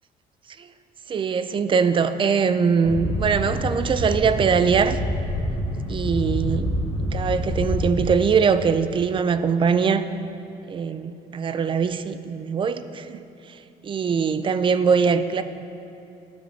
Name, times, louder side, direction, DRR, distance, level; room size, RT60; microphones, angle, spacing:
voice 1, 1.1-5.0 5.9-10.1 10.7-15.4, right 6 dB, 30° right, 11 dB, 0.4 m, -22 dB
sound 1, 2.8-8.1, equal, 25° left, 2.2 m, -27 dB
13.5 x 6.2 x 3.3 m, 2.9 s
cardioid pair, 110°, 17 cm